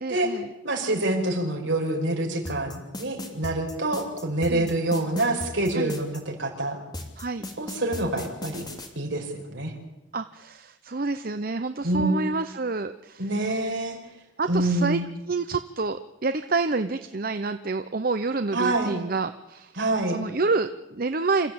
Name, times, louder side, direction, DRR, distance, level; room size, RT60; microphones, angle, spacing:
voice 1, 0.0-0.5 4.5-4.7 5.7-5.9 7.2-7.4 10.1-13.3 14.4-15.0 15.3-19.7 20.1-21.5, right 3 dB, 45° right, 10 dB, 0.7 m, -28 dB
voice 2, 0.6-6.8 7.6-8.6 9.0-9.7 11.8-12.2 13.2-14.0 14.5-15.0 18.5-18.9 19.8-20.2, right 2 dB, 65° right, 2 dB, 5.3 m, -26 dB
sound 1, 2.5-6.2 6.9-8.9, left 1 dB, 20° left, 2.9 m, -36 dB
27.0 x 15.0 x 8.7 m, 0.97 s
head